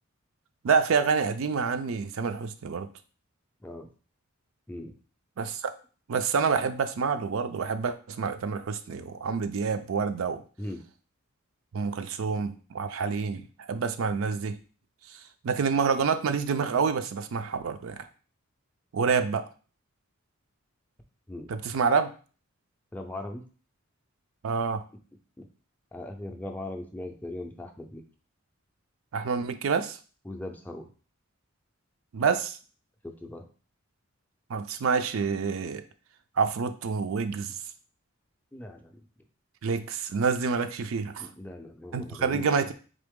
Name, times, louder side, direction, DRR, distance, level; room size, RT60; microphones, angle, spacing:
voice 1, 0.6-2.9 5.4-5.7 6.1-10.4 11.7-14.6 15.4-18.0 18.9-19.4 21.5-22.1 24.4-24.8 29.1-30.0 32.1-32.6 34.5-35.8 36.4-37.6 39.6-41.3 41.9-42.7, right 5 dB, 70° right, 10 dB, 0.4 m, -27 dB
voice 2, 22.9-23.4 25.4-25.5 25.9-28.0 30.2-30.9 33.0-33.5 38.5-39.0 41.1-42.7, left 1 dB, 10° left, 3 dB, 0.4 m, -39 dB
3.9 x 3.4 x 3.6 m, 0.38 s
head